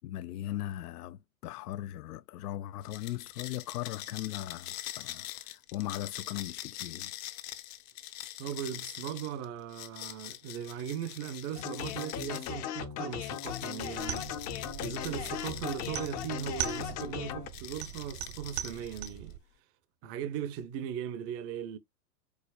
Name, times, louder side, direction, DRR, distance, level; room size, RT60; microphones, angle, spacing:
voice 1, 0.0-7.1, left 13 dB, 70° left, 0.5 m, -39 dB
sound 1, 2.8-12.6 13.1-17.1 17.5-19.3, left 14 dB, 55° left, 0.9 m, -44 dB
voice 2, 8.4-14.3 14.8-19.4 20.0-21.8, right 9 dB, 30° right, 0.6 m, -38 dB
sound 2, 11.6-17.5, left 10 dB, 35° left, 0.7 m, -38 dB
sound 3, 14.0-19.4, right 11 dB, 65° right, 1.0 m, -41 dB
4.9 x 4.0 x 2.3 m
hypercardioid pair, 110°, 48 cm